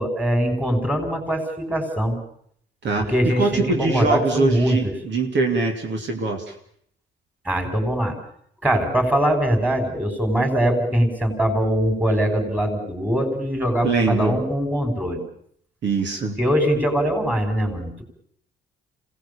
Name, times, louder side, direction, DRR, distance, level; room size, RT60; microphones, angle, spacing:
voice 1, 0.0-2.2 3.1-4.8 7.5-8.2 8.6-15.2 16.4-18.0, equal, 10° right, 5 dB, 5.7 m, -22 dB
voice 2, 2.8-6.5 13.8-14.4 15.8-16.4, right 3 dB, 65° right, 3 dB, 2.9 m, -23 dB
26.5 x 18.0 x 7.1 m, 0.66 s
cardioid pair, 90°, 20 cm